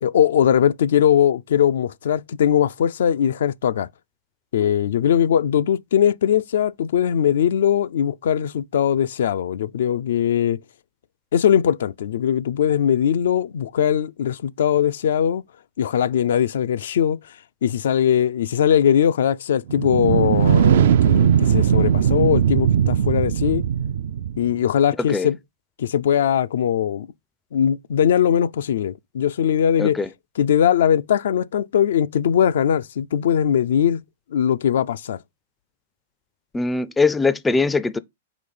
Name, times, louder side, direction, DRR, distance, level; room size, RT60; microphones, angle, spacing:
voice 1, 0.0-3.9 4.5-10.6 11.3-15.4 15.8-17.2 17.6-23.6 24.4-25.4 25.8-27.1 27.5-30.0 30.4-34.0 34.3-35.2, left 9 dB, 75° left, 0.4 m, -20 dB
sound 1, 19.7-24.6, right 8 dB, 70° right, 0.4 m, -18 dB
voice 2, 36.5-38.0, left 4 dB, 10° left, 0.4 m, -21 dB
5.0 x 3.9 x 5.4 m
hypercardioid pair, 140°, 0 cm